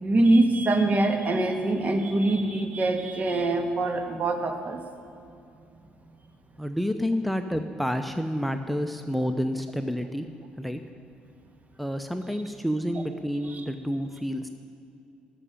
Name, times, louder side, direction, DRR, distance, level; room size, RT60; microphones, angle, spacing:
voice 1, 0.0-4.8 13.5-13.6, right 2 dB, 40° right, 6 dB, 1.5 m, -24 dB
voice 2, 6.6-10.3 10.6-10.8 11.8-14.5, equal, ahead, 8 dB, 0.7 m, -29 dB
12.0 x 6.4 x 8.9 m, 2.6 s
hypercardioid pair, 55°, 4 cm